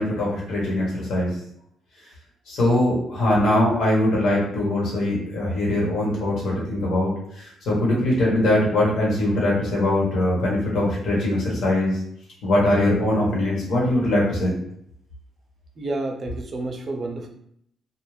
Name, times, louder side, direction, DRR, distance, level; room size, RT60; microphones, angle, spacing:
voice 1, 0.0-1.3 2.5-12.0 12.4-14.5, left 1 dB, 75° left, -4 dB, 1.2 m, -22 dB
voice 2, 15.8-17.3, right 2 dB, 40° right, 3 dB, 0.5 m, -30 dB
2.5 x 2.3 x 3.2 m, 0.72 s
cardioid pair, 90°, 0 cm